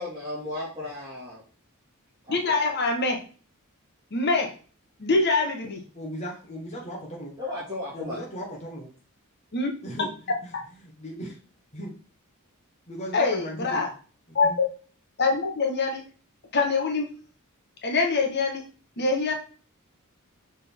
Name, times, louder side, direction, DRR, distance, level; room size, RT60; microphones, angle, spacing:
voice 1, 0.0-1.4 2.3-2.6 7.4-8.2, left 2 dB, 20° right, -10 dB, 2.3 m, -35 dB
voice 2, 2.3-3.2 4.1-4.5 5.0-5.8 9.5-9.7 10.5-10.6 13.1-13.9 14.3-14.7 15.2-16.0 16.5-17.1 17.8-18.6 19.0-19.3, left 3 dB, 50° left, 2 dB, 1.3 m, -24 dB
voice 3, 5.9-7.3 7.9-8.9 9.8-10.1 10.8-11.4 11.7-11.9 12.9-13.8 14.3-14.6, equal, 30° left, -3 dB, 1.4 m, -37 dB
6.5 x 4.0 x 3.6 m, 0.38 s
head